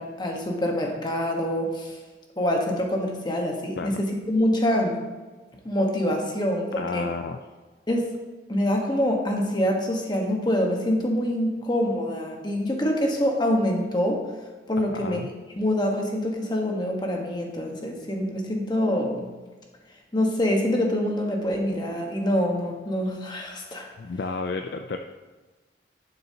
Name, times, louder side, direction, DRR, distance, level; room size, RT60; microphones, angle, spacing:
voice 1, 0.0-2.0 2.4-5.0 5.6-7.1 7.9-8.1 8.5-14.2 14.7-15.3 15.6-19.2 20.1-23.9, left 1 dB, 25° left, 1 dB, 1.2 m, -25 dB
voice 2, 6.8-7.4 14.8-15.3 24.0-25.0, left 4 dB, 65° left, 5 dB, 0.4 m, -32 dB
11.5 x 6.7 x 2.8 m, 1.3 s
head